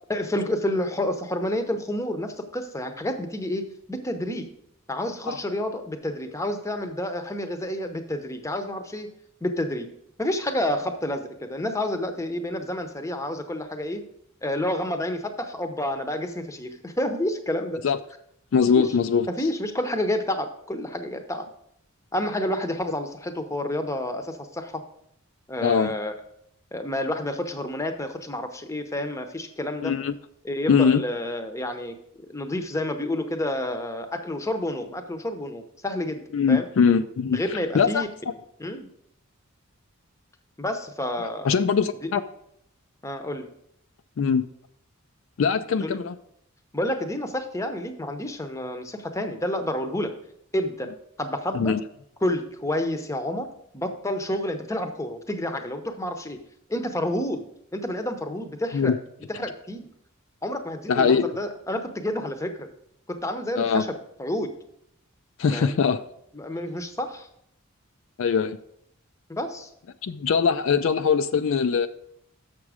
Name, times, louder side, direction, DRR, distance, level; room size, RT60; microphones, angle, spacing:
voice 1, 0.1-4.5 4.9-9.1 9.4-9.9 10.2-14.0 14.4-17.8 18.8-18.9 19.3-21.5 22.1-24.8 25.5-26.1 26.7-29.9 30.4-32.0 32.3-36.2 36.5-36.6 37.3-38.1 38.6-38.9 40.6-41.5 42.0-42.1 43.0-43.5 45.8-46.0 46.7-50.1 50.5-50.9 51.2-51.7 52.2-53.5 53.7-56.4 56.7-57.4 57.7-58.9 59.3-59.9 60.4-62.7 63.1-63.9 64.2-64.5 65.5-65.7 66.3-67.3 69.3-69.7, left 1 dB, 15° left, 7 dB, 0.7 m, -29 dB
voice 2, 18.5-19.3 25.6-25.9 29.8-30.1 30.7-31.0 36.3-38.3 41.2-42.2 44.2-44.4 45.4-46.2 51.5-51.8 58.7-59.0 60.9-61.3 63.6-63.8 65.4-66.0 68.2-68.6 70.0-71.9, left 6 dB, 60° left, 10 dB, 0.4 m, -22 dB
7.3 x 6.1 x 4.8 m, 0.73 s
head